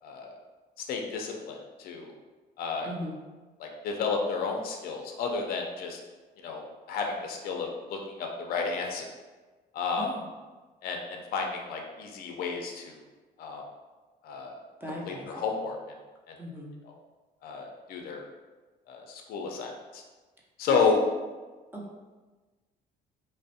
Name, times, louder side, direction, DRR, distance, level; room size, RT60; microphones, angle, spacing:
voice 1, 0.0-0.3 0.8-2.1 2.6-2.9 3.6-6.0 6.4-9.1 9.7-10.1 10.8-13.0 13.4-13.6 14.2-14.6 15.1-15.8 16.3-16.4 17.4-18.2 18.9-20.0 20.6-21.0, left 5 dB, 60° left, 2 dB, 0.4 m, -31 dB
voice 2, 14.8-15.4 16.4-16.7 20.7-21.1 21.7-21.9, equal, 10° right, -3 dB, 0.4 m, -38 dB
2.4 x 2.0 x 2.6 m, 1.3 s
cardioid pair, 110°, 17 cm